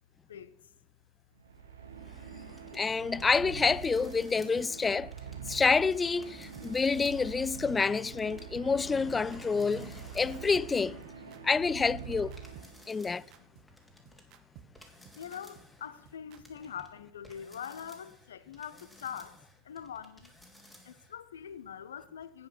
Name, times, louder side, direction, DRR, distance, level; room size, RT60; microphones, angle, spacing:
sound 1, 1.3-13.1, right 7 dB, 80° right, 1.9 m, -45 dB
sound 2, 2.5-4.8 5.1-5.8 6.2-8.4 9.3-10.6 11.7-14.2 14.7-15.9 16.4-16.9 17.2-21.2, equal, ahead, 2.9 m, -57 dB
voice 1, 2.7-5.1 5.5-11.0 11.4-12.3 12.9-13.2, left 4 dB, 20° left, 0.3 m, -28 dB
sound 3, 4.6-4.7 5.0-5.2 5.5-5.6 6.1-6.2 6.5-6.7 7.0-7.2 7.5-7.6 8.1-8.2 8.5-16.4, right 11 dB, 50° right, 1.2 m, -54 dB
voice 2, 15.1-20.3 20.8-22.5, left 8 dB, 75° left, 0.8 m, -43 dB
10.5 x 9.1 x 6.1 m
hypercardioid pair, 85°, 0 cm